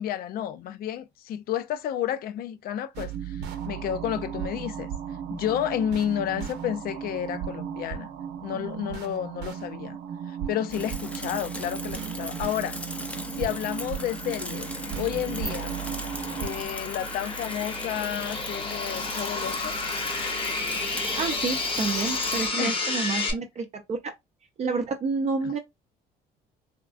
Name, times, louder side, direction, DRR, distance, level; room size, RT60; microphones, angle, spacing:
voice 1, 0.0-4.9 5.3-8.1 8.4-10.0 10.3-12.8 13.4-14.7 15.0-15.7 16.4-19.7 22.6-22.8 23.3-23.4 25.4-25.6, left 10 dB, 60° left, 0.5 m, -31 dB
sound 1, 2.9-16.6, right 8 dB, 85° right, 0.7 m, -35 dB
Bicycle / Mechanisms, 10.7-22.5, equal, 5° left, 0.5 m, -38 dB
sound 2, 12.5-23.3, left 3 dB, 35° left, 0.9 m, -32 dB
voice 2, 21.1-24.1 24.6-25.6, right 4 dB, 40° right, 0.6 m, -29 dB
3.5 x 2.3 x 2.4 m
cardioid pair, 110°, 17 cm